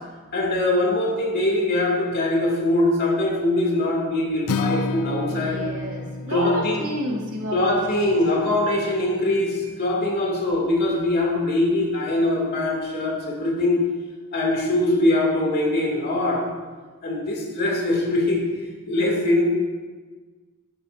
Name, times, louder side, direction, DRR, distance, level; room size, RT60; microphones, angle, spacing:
voice 1, 0.3-5.6 6.3-6.9 7.5-13.8 14.3-16.4 17.0-18.4 18.9-19.4, left 1 dB, 45° left, -2 dB, 2.4 m, -22 dB
Acoustic guitar, 4.5-8.7, left 3 dB, 85° left, 0.5 m, -31 dB
voice 2, 5.3-8.2, right 1 dB, 80° right, -2 dB, 2.2 m, -31 dB
12.5 x 11.0 x 2.6 m, 1.4 s
head